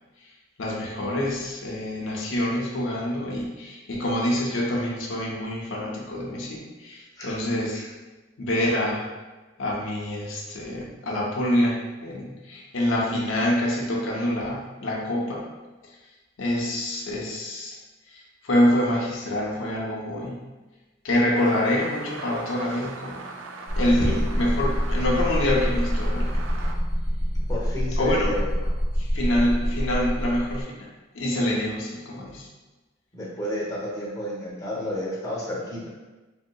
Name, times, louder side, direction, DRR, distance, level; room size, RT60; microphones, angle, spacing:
voice 1, 0.6-7.9 8.4-9.1 9.6-15.4 15.8-15.9 16.4-17.7 18.1-20.4 21.0-23.2 23.8-26.4 28.0-28.3 29.0-30.8 31.1-32.5, left 1 dB, 85° left, -3 dB, 0.6 m, -26 dB
sound 1, 21.4-26.7, right 3 dB, 70° right, 0.3 m, -40 dB
sound 2, 23.7-30.6, equal, 55° right, 0.9 m, -26 dB
voice 2, 27.5-28.5 33.1-35.9, left 1 dB, 20° left, -6 dB, 0.7 m, -31 dB
3.4 x 2.7 x 2.2 m, 1.2 s
head